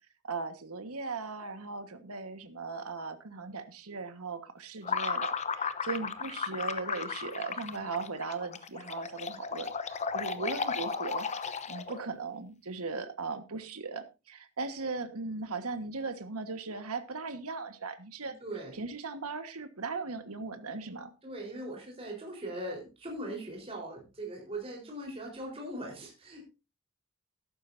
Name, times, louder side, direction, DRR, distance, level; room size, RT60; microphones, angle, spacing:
voice 1, 0.2-18.3 18.7-21.1, right 4 dB, 85° right, 9 dB, 1.5 m, -38 dB
sound 1, 4.8-12.1, left 5 dB, 30° left, 0.8 m, -35 dB
voice 2, 18.4-18.8 21.2-26.5, right 1 dB, 25° right, -1 dB, 4.1 m, -40 dB
14.0 x 12.0 x 2.7 m, 0.28 s
head